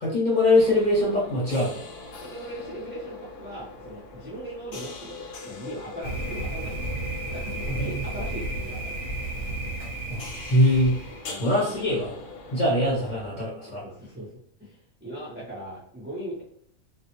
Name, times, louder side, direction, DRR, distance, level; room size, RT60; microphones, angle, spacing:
voice 1, 0.0-1.8 7.7-8.0 10.1-10.2 10.5-10.9 11.3-12.1 12.5-13.8, left 1 dB, 40° left, -5 dB, 0.9 m, -22 dB
sound 1, 0.5-13.3, left 4 dB, 80° left, 1.0 m, -42 dB
voice 2, 2.2-6.8 7.3-9.0 11.3-11.5 13.8-14.3 14.6-16.4, right 1 dB, 15° right, -8 dB, 0.3 m, -39 dB
Thunder, 6.0-11.3, right 2 dB, 45° right, 0.9 m, -33 dB
2.4 x 2.0 x 2.9 m, 0.64 s
omnidirectional pair, 1.4 m